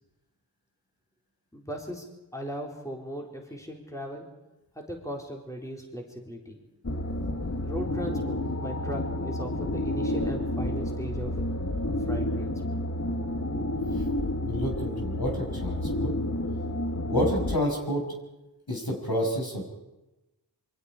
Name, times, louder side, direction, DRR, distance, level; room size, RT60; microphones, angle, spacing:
voice 1, 1.5-2.1 2.3-4.2 4.8-6.6 7.6-11.3 12.0-12.8, equal, 5° left, 0 dB, 3.9 m, -38 dB
sound 1, 6.8-17.6, left 1 dB, 40° left, 1.5 m, -30 dB
voice 2, 14.3-16.1 17.1-18.0 18.7-19.6, equal, 60° left, 0 dB, 5.7 m, -29 dB
28.0 x 24.0 x 4.9 m, 1.0 s
wide cardioid pair, 55°, 42 cm